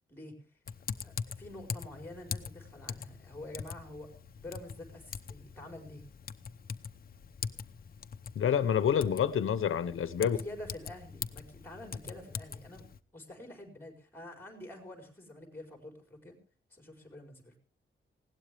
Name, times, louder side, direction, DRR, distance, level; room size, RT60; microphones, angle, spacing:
Typing, 0.7-13.0, left 6 dB, 45° left, 0.8 m, -43 dB
voice 1, 1.0-4.1 4.4-6.0 10.2-12.9 13.1-16.4 16.7-17.6, left 1 dB, 10° left, 4.5 m, -47 dB
voice 2, 8.3-10.4, left 8 dB, 85° left, 0.9 m, -28 dB
20.0 x 17.0 x 3.4 m
wide cardioid pair, 165°, 21 cm